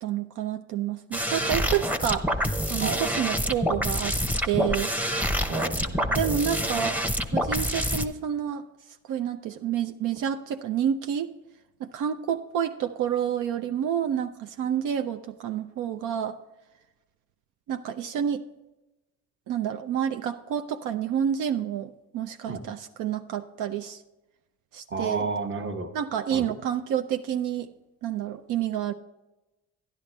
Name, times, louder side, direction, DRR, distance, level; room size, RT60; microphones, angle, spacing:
voice 1, 0.0-2.3 2.7-4.2 4.5-4.9 6.2-7.0 7.3-8.6 9.1-11.3 11.8-16.4 17.7-18.4 19.5-24.0 24.7-25.3 25.9-27.7 28.0-28.9, right 9 dB, 85° right, 6 dB, 0.5 m, -29 dB
sound 1, 1.1-8.1, equal, 5° right, 0.8 m, -27 dB
voice 2, 5.5-6.4 22.5-22.6 24.9-25.9 26.3-26.5, right 4 dB, 40° right, 5 dB, 1.2 m, -32 dB
11.5 x 11.0 x 3.3 m, 1.0 s
cardioid pair, 90°, 30 cm